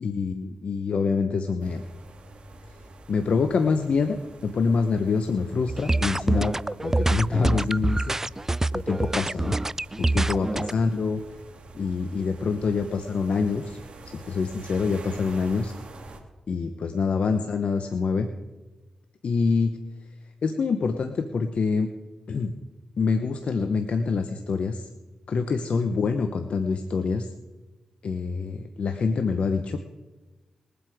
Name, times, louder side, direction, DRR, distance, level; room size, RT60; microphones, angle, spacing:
voice 1, 0.0-1.8 3.1-6.5 6.8-8.2 8.7-9.5 10.0-11.2 11.7-13.8 14.1-15.7 16.5-18.3 19.2-19.7 20.4-21.9 22.3-22.5 23.0-24.9 25.3-27.3 28.0-29.8, left 4 dB, 70° left, 7 dB, 0.9 m, -26 dB
sound 1, 1.6-16.2, right 2 dB, 60° right, 2.4 m, -47 dB
sound 2, 5.7-10.7, right 2 dB, 20° right, 0.3 m, -25 dB
21.0 x 8.0 x 4.9 m, 1.2 s
cardioid pair, 55°, 2 cm